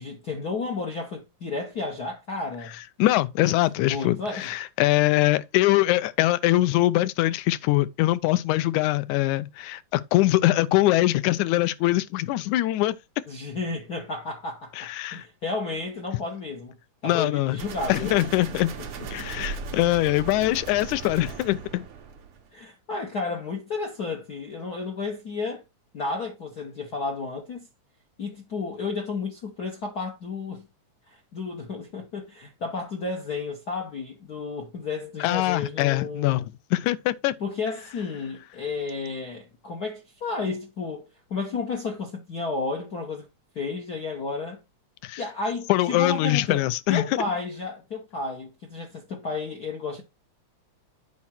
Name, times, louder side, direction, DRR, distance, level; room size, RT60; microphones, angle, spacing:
voice 1, 0.0-2.7 3.4-4.6 13.3-16.8 17.0-18.2 18.8-19.5 22.5-25.6 25.9-27.7 28.2-30.7 31.1-36.4 37.4-43.3 43.5-44.6 45.2-46.6 46.9-50.0, left 4 dB, 65° left, 0.9 m, -32 dB
voice 2, 3.0-13.0 14.8-15.2 17.0-17.6 17.9-18.7 19.1-21.9 35.2-37.3 45.0-45.2 45.7-47.0, left 16 dB, 90° left, 2.0 m, -23 dB
sound 1, 17.6-22.5, right 5 dB, 55° right, 1.9 m, -37 dB
8.4 x 4.9 x 4.3 m
omnidirectional pair, 3.3 m